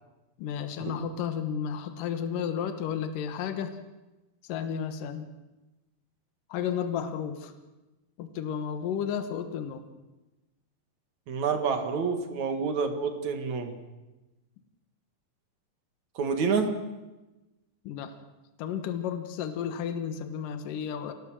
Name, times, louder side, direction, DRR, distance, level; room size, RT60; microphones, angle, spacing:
voice 1, 0.4-3.8 4.4-5.3 6.5-7.5 8.2-9.8 17.8-18.1 18.6-21.1, left 8 dB, 70° left, 8 dB, 2.9 m, -32 dB
voice 2, 11.3-13.7 16.2-16.7, right 5 dB, 55° right, 7 dB, 2.9 m, -28 dB
26.5 x 17.5 x 7.5 m, 1.1 s
omnidirectional pair, 4.1 m